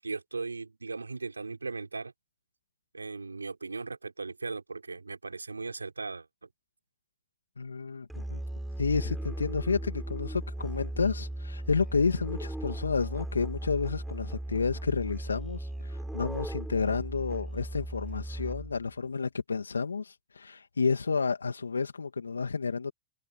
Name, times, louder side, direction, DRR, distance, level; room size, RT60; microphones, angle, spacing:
voice 1, 0.0-2.1 2.9-6.5, right 4 dB, 90° right, 5.0 m, -38 dB
voice 2, 7.6-8.4 8.8-22.9, left 5 dB, 85° left, 2.2 m, -30 dB
Musical instrument, 8.1-18.9, right 1 dB, 5° right, 6.2 m, -37 dB
figure-of-eight pair, 100°, 0 cm